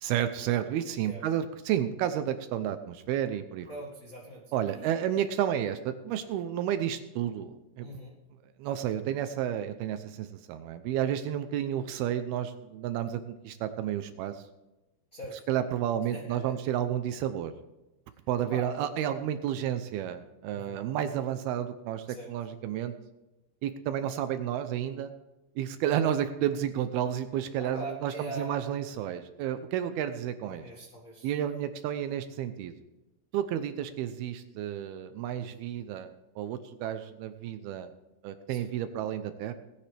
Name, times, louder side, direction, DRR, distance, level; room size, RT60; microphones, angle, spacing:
voice 1, 0.0-3.7 4.5-7.9 8.6-14.4 15.5-17.5 18.3-22.9 23.6-25.1 25.6-30.6 31.2-32.7 33.3-37.9 38.2-39.5, right 10 dB, 80° right, 10 dB, 2.4 m, -31 dB
voice 2, 3.6-5.3 7.8-8.2 15.1-15.4 16.1-16.5 18.5-18.9 20.5-20.9 22.1-22.3 27.6-28.5 30.5-31.3 35.3-35.5 38.5-38.7, right 1 dB, 75° left, -4 dB, 0.7 m, -43 dB
20.0 x 9.9 x 3.4 m, 1.0 s
omnidirectional pair, 5.0 m